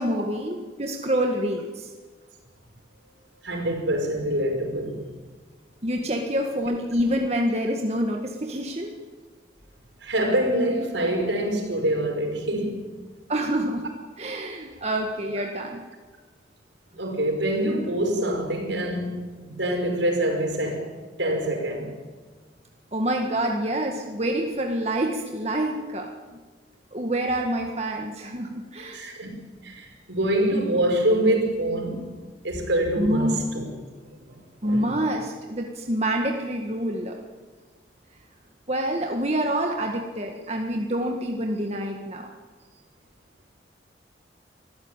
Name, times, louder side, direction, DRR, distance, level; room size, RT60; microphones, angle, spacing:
voice 1, 0.0-1.9 5.8-8.9 13.3-13.8 14.2-15.8 22.9-26.1 26.9-29.0 33.0-33.4 34.6-37.2 38.7-42.3, right 1 dB, 35° right, 1.8 m, -27 dB
voice 2, 3.4-5.0 10.0-12.8 17.0-20.9 21.2-21.9 28.9-32.1 32.4-33.6 34.1-34.2 34.6-34.9, right 1 dB, 80° right, 5.6 m, -25 dB
25.0 x 15.0 x 9.0 m
head